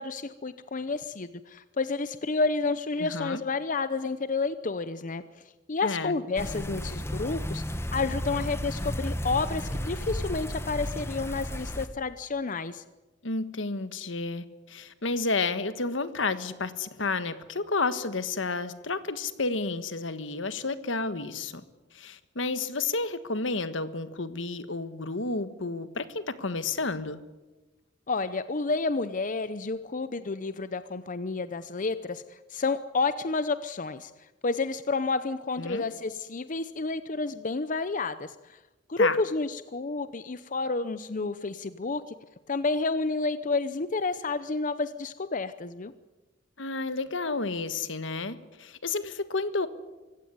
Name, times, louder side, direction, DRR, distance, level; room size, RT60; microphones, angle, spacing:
voice 1, 0.0-7.6 7.9-12.8 28.1-38.6 38.9-42.1 42.5-45.9, left 3 dB, 45° left, 13 dB, 0.7 m, -30 dB
voice 2, 3.0-3.4 5.8-6.2 13.2-21.6 21.9-27.2 35.6-35.9 39.0-39.2 46.6-49.7, left 3 dB, 80° left, 12 dB, 1.5 m, -31 dB
sound 1, 6.4-11.9, equal, 15° left, 1.3 m, -33 dB
24.5 x 16.0 x 9.5 m, 1.1 s
head